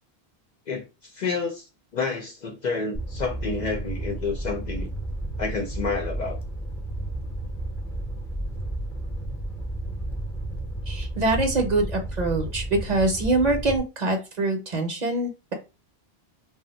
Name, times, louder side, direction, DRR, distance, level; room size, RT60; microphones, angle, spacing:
voice 1, 0.7-4.9 5.4-6.4, left 4 dB, 55° left, 2 dB, 0.6 m, -29 dB
Fire, 2.9-13.8, right 1 dB, 5° left, 0.5 m, -32 dB
voice 2, 10.9-15.5, right 2 dB, 50° right, 3 dB, 0.7 m, -24 dB
2.5 x 2.1 x 3.9 m, 0.29 s
omnidirectional pair, 1.1 m